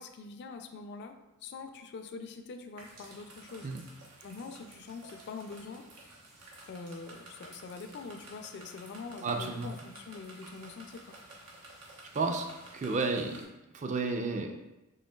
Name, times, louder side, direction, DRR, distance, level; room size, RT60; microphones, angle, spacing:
voice 1, 0.0-3.7 4.2-5.9 6.7-11.1, left 4 dB, 50° left, 6 dB, 0.4 m, -44 dB
sound 1, 2.8-13.4, right 2 dB, 90° right, 1.0 m, -52 dB
voice 2, 9.2-9.7 12.1-12.5 12.7-13.4 13.7-14.5, right 3 dB, 35° right, 3 dB, 0.4 m, -31 dB
5.2 x 3.6 x 2.3 m, 0.99 s
head